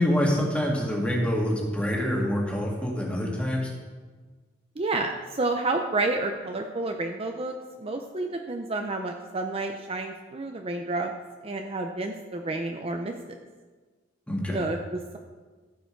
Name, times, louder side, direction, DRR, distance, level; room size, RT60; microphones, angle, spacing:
voice 1, 0.0-3.7 14.3-14.6, equal, 5° left, -2 dB, 2.0 m, -26 dB
voice 2, 4.8-11.1 11.4-13.1 14.5-15.2, right 2 dB, 30° right, 4 dB, 0.6 m, -30 dB
15.0 x 6.9 x 4.6 m, 1.4 s
head